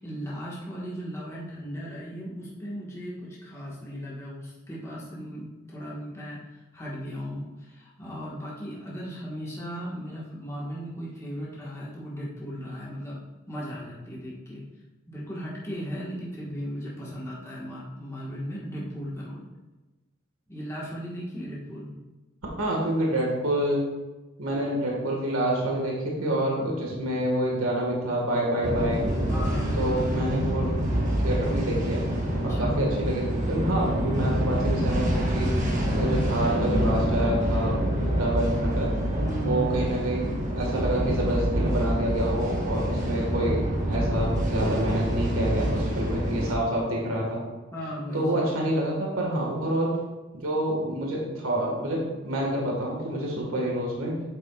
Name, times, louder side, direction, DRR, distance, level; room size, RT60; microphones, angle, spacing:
voice 1, 0.0-13.2 13.5-14.6 15.1-19.4 20.5-21.9 29.3-30.3 32.3-32.9 39.2-39.8 46.5-46.6 47.7-48.6, equal, 15° left, -6 dB, 1.4 m, -36 dB
voice 2, 22.6-23.8 24.4-29.0 29.8-32.0 32.4-35.5 36.0-37.7 38.1-38.9 39.4-47.4 48.1-50.0 50.3-54.1, right 1 dB, 90° right, -2 dB, 1.6 m, -27 dB
sound 1, 28.6-46.5, equal, 35° right, 1.3 m, -26 dB
8.5 x 7.5 x 2.4 m, 1.2 s
head